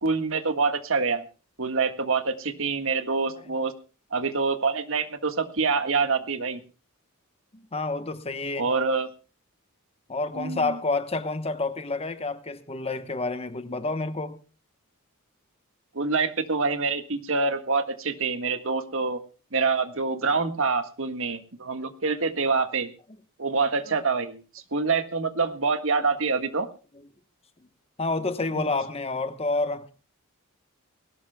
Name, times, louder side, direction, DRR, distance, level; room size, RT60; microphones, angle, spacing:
voice 1, 0.0-1.2 1.6-3.7 4.1-6.6 8.6-9.1 10.3-10.8 15.9-19.2 19.5-22.9 23.4-24.4 24.7-26.7 28.5-28.7, right 4 dB, 65° right, 1.6 m, -26 dB
voice 2, 7.5-8.7 10.1-14.4 23.9-24.0 28.0-29.9, left 3 dB, 25° left, 1.0 m, -29 dB
20.5 x 17.5 x 2.3 m
head